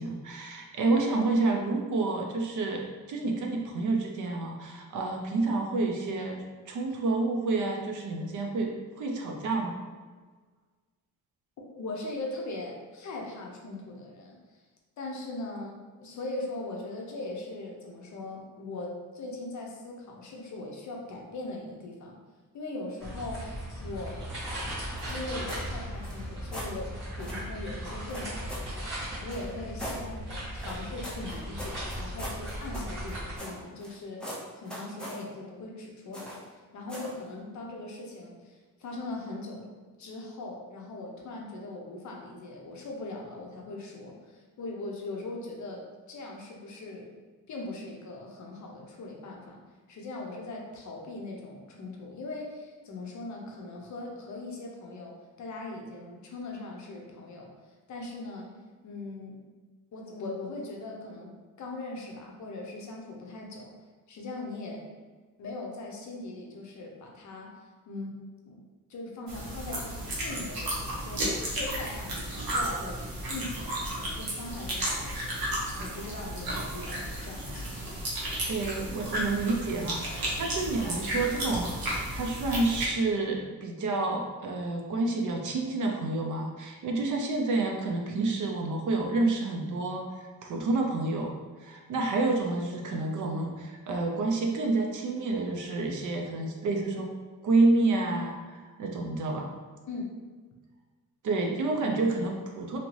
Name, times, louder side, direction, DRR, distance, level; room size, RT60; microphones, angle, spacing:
voice 1, 0.0-2.8 3.1-9.8 78.4-91.3 91.6-97.1 97.4-99.5 101.2-102.8, right 3 dB, 55° right, 1 dB, 0.5 m, -29 dB
voice 2, 11.8-14.6 15.0-22.2 22.5-23.5 23.8-24.3 25.0-26.9 27.2-28.9 29.2-30.2 30.5-34.2 34.5-36.3 36.7-39.7 40.0-47.1 47.5-49.6 49.9-57.5 57.9-58.5 58.8-59.4 59.9-63.7 64.1-64.8 65.4-67.6 67.9-68.2 68.5-68.6 68.9-78.0 99.9-100.1, left 2 dB, 50° left, 0 dB, 0.6 m, -40 dB
sound 1, 23.0-33.4, equal, 30° right, 1.3 m, -37 dB
sound 2, 25.0-25.7 26.0-26.7 27.2-27.4 28.1-28.7 29.3-30.0 30.6-33.9 34.2-35.2 36.1-36.5 36.9-37.2, equal, ahead, 0.4 m, -41 dB
sound 3, 69.3-82.8, right 1 dB, 70° right, 0.9 m, -33 dB
2.8 x 2.6 x 3.0 m, 1.4 s
wide cardioid pair, 175°, 37 cm